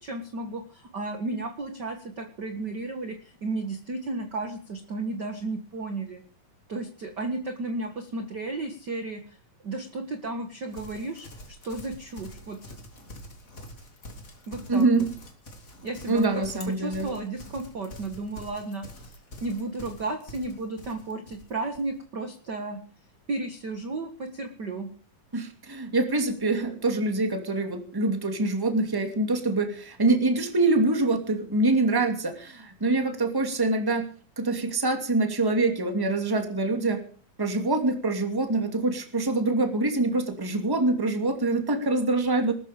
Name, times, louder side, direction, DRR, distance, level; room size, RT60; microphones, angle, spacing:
voice 1, 0.0-6.2 6.7-9.4 9.6-12.7 14.5-15.0 15.8-16.4 16.8-19.1 19.4-22.8 23.3-24.9, right 2 dB, 45° right, 6 dB, 1.6 m, -33 dB
Livestock farm animals working animals, 10.7-21.9, left 1 dB, 25° left, 2.8 m, -46 dB
voice 2, 14.7-15.1 16.1-17.1 25.3-34.1 34.4-37.0 37.4-42.5, right 2 dB, 10° right, 6 dB, 1.9 m, -25 dB
20.0 x 13.0 x 5.1 m, 0.42 s
omnidirectional pair, 3.8 m